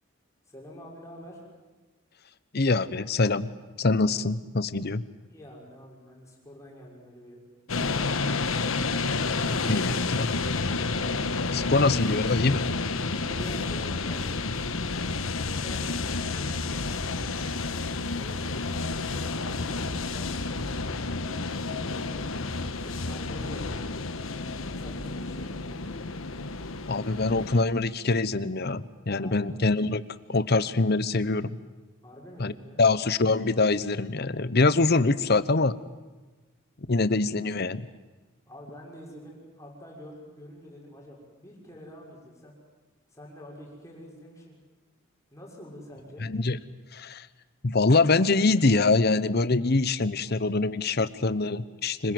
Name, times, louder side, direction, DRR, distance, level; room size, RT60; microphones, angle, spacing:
voice 1, 0.5-1.5 5.3-7.4 13.2-14.4 15.4-15.9 16.3-17.1 18.1-18.4 19.0-20.3 21.3-22.6 22.8-23.8 24.7-26.0 29.2-29.4 32.0-32.8 38.5-42.6 43.1-44.6 45.3-46.3, equal, 15° left, -2 dB, 6.2 m, -47 dB
voice 2, 2.5-3.5 3.8-5.0 9.7-10.4 11.5-12.7 26.9-30.0 30.3-31.6 32.4-32.5 32.8-35.8 36.9-37.9 46.2-46.6 46.9-47.3 47.6-52.1, left 3 dB, 50° left, 15 dB, 0.9 m, -24 dB
sound 1, 7.7-27.6, left 3 dB, 80° left, 1.3 m, -30 dB
26.0 x 22.0 x 7.9 m, 1.2 s
head